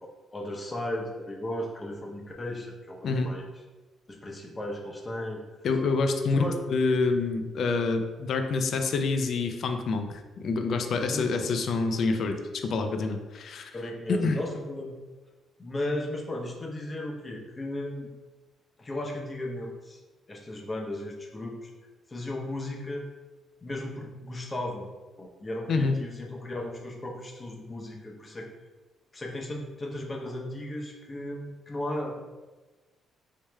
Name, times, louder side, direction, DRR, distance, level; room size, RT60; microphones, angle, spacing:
voice 1, 0.0-3.5 4.1-5.4 6.3-6.6 11.1-11.5 13.7-15.0 15.6-18.1 18.8-20.0 20.3-21.7 22.1-23.1 23.6-24.9 25.2-28.5 29.1-32.2, left 1 dB, 25° left, 0 dB, 0.7 m, -35 dB
voice 2, 5.6-13.8 14.1-14.4 25.7-26.0, left 4 dB, 60° left, 6 dB, 0.4 m, -27 dB
4.7 x 3.0 x 2.2 m, 1.2 s
cardioid pair, 90°, 0 cm